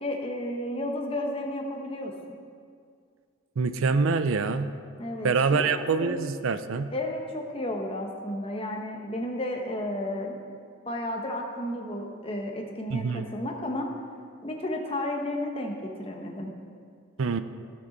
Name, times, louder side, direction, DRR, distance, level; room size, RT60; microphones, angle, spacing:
voice 1, 0.0-2.1 5.0-6.2 6.9-10.4 10.9-13.9 14.4-16.5, left 1 dB, 25° left, 2 dB, 1.0 m, -32 dB
voice 2, 3.6-4.7 5.2-6.9 12.9-13.3 17.2-17.4, right 4 dB, 80° right, 11 dB, 0.5 m, -25 dB
15.5 x 6.5 x 4.0 m, 2.2 s
head